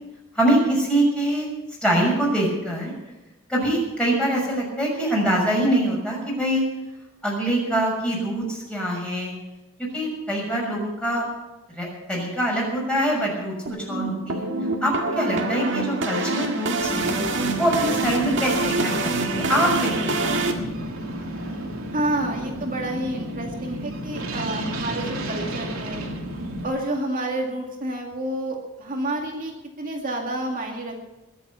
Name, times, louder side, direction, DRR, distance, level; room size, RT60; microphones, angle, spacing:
voice 1, 0.3-1.5 1.8-2.9 3.5-6.6 7.2-9.3 9.9-11.3 11.7-13.5 13.9-14.4 14.8-17.2 17.6-20.5, right 1 dB, 5° left, -3 dB, 6.2 m, -24 dB
sound 1, 13.7-20.5, right 2 dB, 60° right, 1.9 m, -26 dB
sound 2, 16.8-26.6, right 1 dB, 85° right, 2.9 m, -32 dB
voice 2, 21.9-26.1 26.6-30.9, right 1 dB, 40° right, 1 dB, 2.2 m, -29 dB
22.0 x 7.9 x 6.9 m, 1.0 s
head